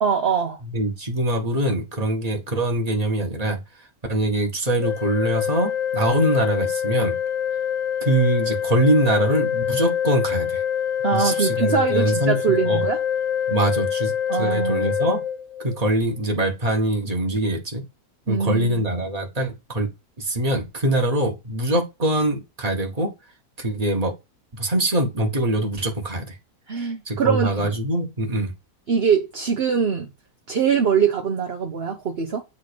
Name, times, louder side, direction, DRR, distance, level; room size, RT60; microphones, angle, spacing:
voice 1, 0.0-0.6 11.0-13.0 14.3-15.1 18.3-18.8 26.7-27.7 28.9-30.1 30.5-32.4, right 6 dB, 45° right, 1.1 m, -23 dB
voice 2, 0.7-3.6 4.1-7.1 8.0-10.6 11.1-12.8 13.5-14.1 14.4-15.2 15.6-17.8 18.3-19.9 20.2-23.1 23.6-24.1 24.5-26.3 27.0-28.5, right 1 dB, 25° right, 1.5 m, -23 dB
Organ, 4.8-15.9, left 8 dB, 60° left, 0.9 m, -25 dB
8.6 x 3.7 x 5.2 m
omnidirectional pair, 1.6 m